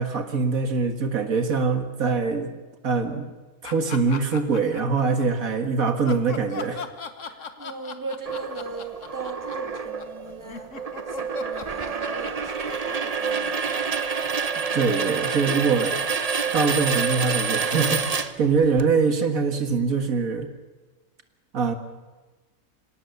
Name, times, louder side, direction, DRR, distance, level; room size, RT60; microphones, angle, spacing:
voice 1, 0.0-2.5 2.8-3.3 3.6-6.9 14.7-16.0 16.5-20.5 21.5-21.8, right 4 dB, 75° right, 7 dB, 2.1 m, -23 dB
sound 1, 3.6-5.2 5.8-14.1, left 5 dB, 60° left, 1.7 m, -38 dB
voice 2, 7.6-10.7 11.1-13.6, right 3 dB, 15° right, 5 dB, 2.2 m, -38 dB
sound 2, 8.3-18.8, right 5 dB, 30° right, 0.9 m, -28 dB
25.5 x 18.0 x 7.0 m, 1.2 s
omnidirectional pair, 1.5 m